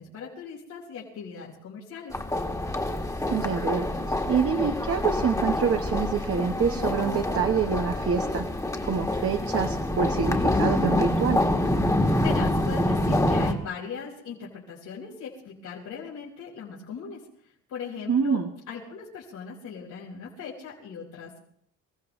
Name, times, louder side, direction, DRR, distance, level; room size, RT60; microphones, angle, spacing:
voice 1, 0.0-2.2 12.2-18.4 18.7-21.5, left 6 dB, 85° left, -6 dB, 4.0 m, -39 dB
sound 1, 2.1-13.5, left 1 dB, 10° left, 1.6 m, -26 dB
voice 2, 3.3-8.5 8.8-11.4 18.1-18.5, right 6 dB, 50° right, 4 dB, 1.1 m, -26 dB
25.5 x 15.5 x 3.1 m, 0.64 s
cardioid pair, 90°, 30 cm